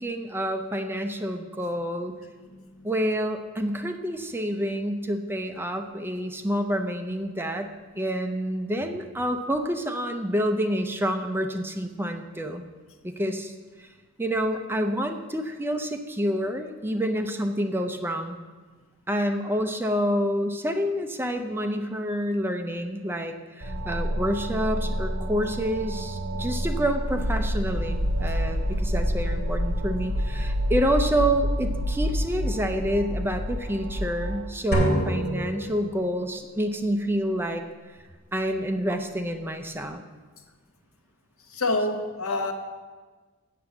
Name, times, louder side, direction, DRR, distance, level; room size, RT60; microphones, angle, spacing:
voice 1, 0.0-2.1 2.8-7.7 7.9-12.6 13.0-13.5 13.8-13.9 14.2-18.4 19.1-37.6 38.3-40.0, equal, 10° right, 6 dB, 0.5 m, -28 dB
voice 2, 2.5-2.9 41.5-42.5, left 2 dB, 75° left, 5 dB, 1.0 m, -27 dB
sound 1, 23.6-34.4, equal, 60° right, 1.6 m, -28 dB
sound 2, 34.7-36.4, right 1 dB, 45° left, 2.3 m, -27 dB
7.7 x 7.6 x 7.0 m, 1.4 s
head